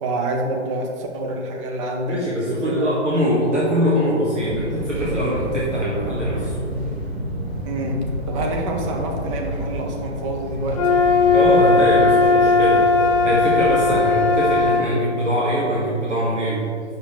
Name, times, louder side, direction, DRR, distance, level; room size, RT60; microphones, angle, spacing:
voice 1, 0.0-2.2 2.4-2.9 7.6-11.0, right 1 dB, 25° right, 1 dB, 1.0 m, -27 dB
voice 2, 2.0-6.5 11.3-16.7, equal, 80° right, -7 dB, 1.8 m, -22 dB
Fixed-wing aircraft airplane, 4.4-14.7, right 1 dB, 10° right, 0.4 m, -29 dB
sound 1, 10.7-14.9, left 4 dB, 30° left, 0.7 m, -17 dB
8.2 x 6.6 x 3.3 m, 2.5 s
figure-of-eight pair, 125°, 36 cm